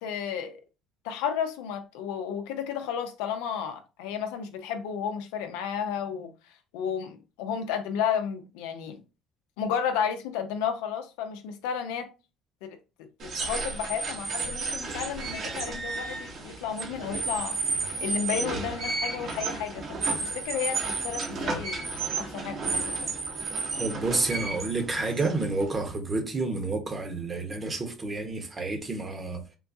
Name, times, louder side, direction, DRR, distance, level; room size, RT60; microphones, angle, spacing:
voice 1, 0.0-0.6 1.0-6.3 6.7-9.0 9.6-12.1 12.6-12.8 13.2-17.6 18.0-21.9 22.2-23.1, left 7 dB, 85° left, 0.5 m, -32 dB
sound 1, 13.2-25.9, right 3 dB, 55° right, 1.0 m, -32 dB
voice 2, 23.8-29.6, right 3 dB, 30° right, 1.0 m, -30 dB
3.7 x 2.3 x 2.6 m
supercardioid pair, 90°, 0 cm